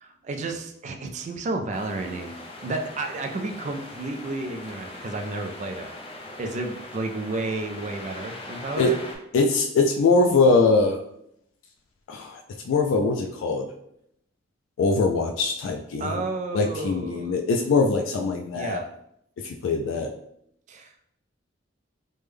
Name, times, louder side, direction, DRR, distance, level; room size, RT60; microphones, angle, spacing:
voice 1, 0.0-2.3 2.6-5.9 6.4-9.0 16.0-17.4 18.5-18.9 20.7-20.9, right 2 dB, 40° right, 5 dB, 0.3 m, -31 dB
sound 1, 1.7-9.2, left 2 dB, 30° left, 0.5 m, -41 dB
voice 2, 9.3-11.0 12.1-13.7 14.8-16.2 16.5-18.8 19.4-20.1, left 3 dB, 90° left, 3 dB, 0.3 m, -22 dB
3.3 x 2.1 x 3.4 m, 0.74 s
head